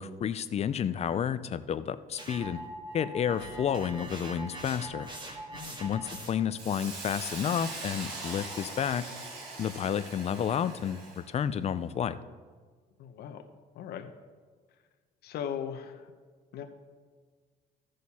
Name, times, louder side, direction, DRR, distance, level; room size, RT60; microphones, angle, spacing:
voice 1, 0.0-2.6 2.9-5.1 5.8-9.0 9.6-12.2, left 8 dB, 40° left, 14 dB, 0.5 m, -31 dB
sound 1, 2.2-6.6, right 1 dB, 25° right, 2.0 m, -42 dB
voice 2, 5.5-5.8 13.0-13.5 13.7-14.1 15.2-16.1 16.5-16.6, left 8 dB, 70° left, 6 dB, 0.9 m, -38 dB
Hiss, 6.6-11.3, right 2 dB, 90° right, 2.4 m, -41 dB
15.0 x 6.5 x 4.2 m, 1.5 s
cardioid pair, 110°, 17 cm